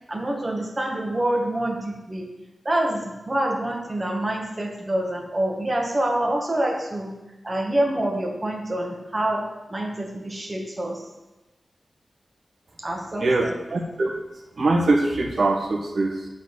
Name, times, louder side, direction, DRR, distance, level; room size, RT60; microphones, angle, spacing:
voice 1, 0.1-2.3 2.7-7.1 7.4-11.0 12.8-13.6, right 1 dB, 25° right, 0 dB, 1.8 m, -26 dB
voice 2, 13.2-14.1 14.6-16.3, right 2 dB, 60° right, 0 dB, 1.8 m, -22 dB
8.1 x 4.2 x 7.0 m, 1.1 s
wide cardioid pair, 90°, 0 cm